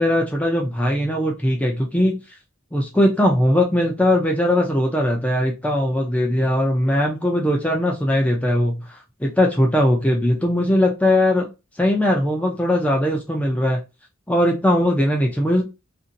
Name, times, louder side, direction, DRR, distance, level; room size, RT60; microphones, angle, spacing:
voice 1, 0.0-2.4 2.7-11.5 11.8-13.8 14.3-15.6, left 1 dB, 5° left, 0 dB, 0.5 m, -20 dB
2.7 x 2.6 x 2.5 m, 0.26 s
head